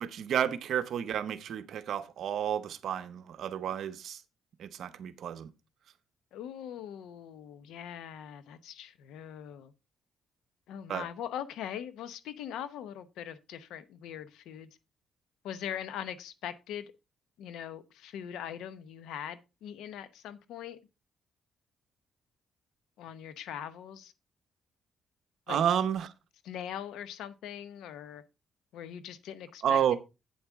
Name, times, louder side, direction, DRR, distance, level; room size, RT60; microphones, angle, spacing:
voice 1, 0.0-4.2 4.6-5.5 10.9-11.0 25.5-26.1 29.6-30.0, right 9 dB, 70° right, 0.8 m, -31 dB
voice 2, 6.3-9.7 10.7-14.7 15.4-16.9 17.4-20.8 23.0-24.1 25.5-25.6 26.4-28.2 28.7-29.8, left 9 dB, 85° left, 0.8 m, -41 dB
8.7 x 7.3 x 3.6 m
cardioid pair, 90°, 0 cm